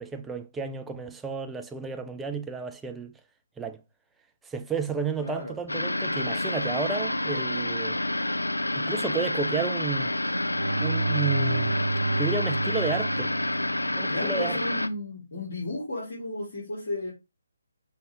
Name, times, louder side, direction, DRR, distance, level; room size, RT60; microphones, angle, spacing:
voice 1, 0.0-3.1 3.6-3.8 4.4-8.0 8.7-10.1 10.8-11.8 12.2-13.3 13.9-14.6, right 4 dB, 5° right, 0.3 m, -32 dB
voice 2, 5.2-5.6 14.1-17.1, left 2 dB, 50° left, 2.2 m, -33 dB
sound 1, 5.7-14.9, left 1 dB, 80° left, 0.4 m, -28 dB
Bowed string instrument, 10.1-14.2, right 3 dB, 75° right, 0.4 m, -30 dB
5.3 x 2.7 x 3.3 m
figure-of-eight pair, 140°, 0 cm